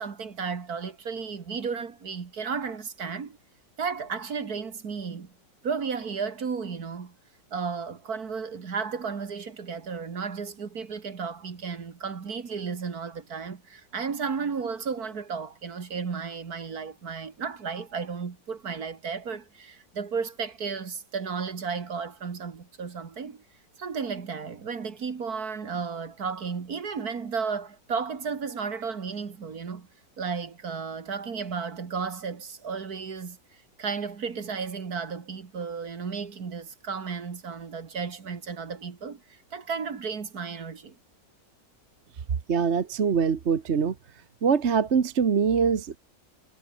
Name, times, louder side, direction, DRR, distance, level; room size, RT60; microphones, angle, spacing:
voice 1, 0.0-3.4 3.8-5.3 5.6-7.1 7.5-23.4 23.8-29.9 30.2-33.4 33.8-41.0, right 5 dB, 60° right, 2.4 m, -33 dB
voice 2, 42.5-43.9 44.4-46.0, right 6 dB, 45° right, 1.4 m, -23 dB
omnidirectional pair, 1.9 m